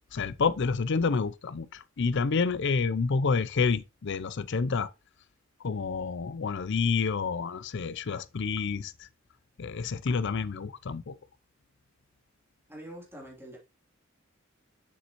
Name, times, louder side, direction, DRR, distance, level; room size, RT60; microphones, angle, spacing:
voice 1, 0.1-4.9 5.6-8.9 9.6-11.2, left 5 dB, 60° left, 0.5 m, -28 dB
voice 2, 12.7-13.6, right 1 dB, 10° right, 3.2 m, -44 dB
7.2 x 6.8 x 3.0 m
head